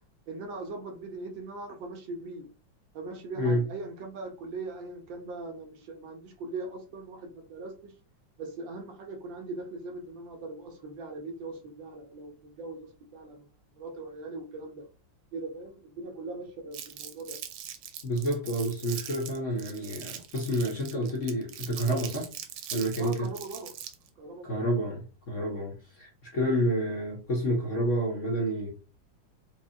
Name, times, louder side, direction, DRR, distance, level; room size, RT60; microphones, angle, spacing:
voice 1, 0.3-2.5 2.9-7.9 8.4-13.5 13.8-14.9 15.3-17.4 23.0-23.7 24.2-24.6, right 3 dB, 70° right, 1.4 m, -40 dB
Crumpling crinkling, 16.7-24.1, right 10 dB, 90° right, 1.5 m, -41 dB
voice 2, 18.0-22.3 22.7-23.3 24.4-28.7, equal, 50° left, 0.9 m, -29 dB
4.7 x 2.4 x 2.7 m
omnidirectional pair, 2.3 m